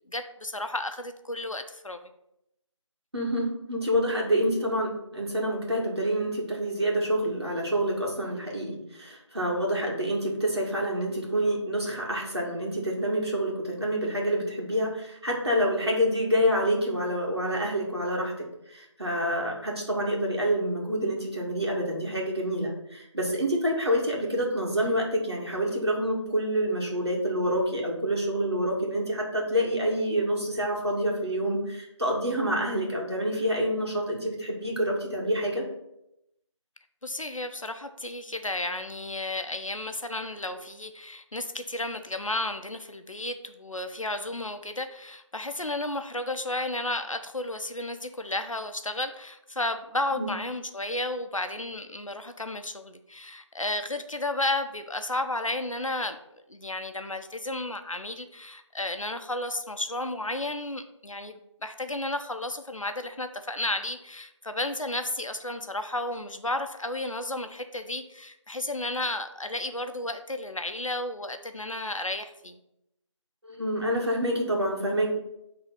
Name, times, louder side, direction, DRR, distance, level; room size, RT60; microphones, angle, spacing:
voice 1, 0.1-2.0 37.0-56.2 56.5-72.6, left 2 dB, 85° left, 8 dB, 0.9 m, -33 dB
voice 2, 3.1-18.3 18.7-35.6 50.2-50.3 73.4-75.1, equal, 55° right, -3 dB, 2.4 m, -27 dB
6.4 x 3.9 x 5.8 m, 0.82 s
figure-of-eight pair, 175°, 16 cm